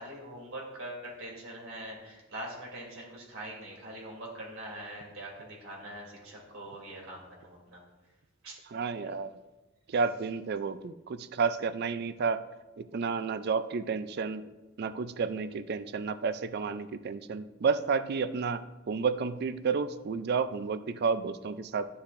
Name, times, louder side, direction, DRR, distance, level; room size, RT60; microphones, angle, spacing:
voice 1, 0.0-7.8 8.4-8.6, right 1 dB, 80° right, -2 dB, 3.0 m, -43 dB
voice 2, 8.7-9.3 9.9-12.4 12.8-14.4 14.8-18.6 18.9-21.9, right 5 dB, 50° right, 13 dB, 0.4 m, -31 dB
11.5 x 7.0 x 2.6 m, 1.1 s
head